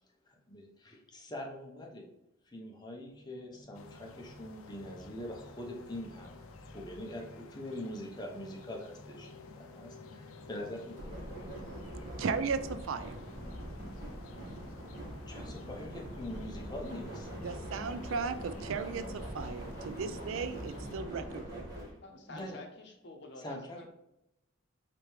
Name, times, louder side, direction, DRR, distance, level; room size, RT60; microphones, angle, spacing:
voice 1, 0.3-2.1 2.4-9.3 9.6-11.5 15.3-17.3 22.3-22.6 23.4-23.9, left 1 dB, 20° left, 0 dB, 0.7 m, -43 dB
sound 1, 3.1-22.0, right 1 dB, 20° right, 1.5 m, -45 dB
sound 2, 3.7-21.0, left 3 dB, 90° left, 0.5 m, -53 dB
voice 2, 12.2-13.1 17.4-21.8, right 5 dB, 75° right, 11 dB, 0.4 m, -36 dB
voice 3, 22.0-23.9, left 2 dB, 55° left, 3 dB, 0.8 m, -49 dB
4.8 x 3.4 x 3.1 m, 0.87 s
head